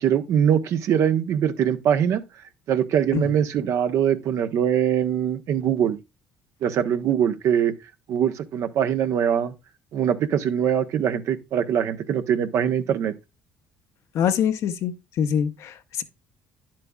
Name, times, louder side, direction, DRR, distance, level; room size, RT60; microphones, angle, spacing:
voice 1, 0.0-2.2 2.7-6.0 6.6-7.7 8.1-9.5 9.9-13.1, right 9 dB, 65° right, 1.0 m, -22 dB
voice 2, 14.1-16.0, left 8 dB, 65° left, 0.9 m, -24 dB
10.0 x 7.6 x 2.3 m
supercardioid pair, 75°, 5 cm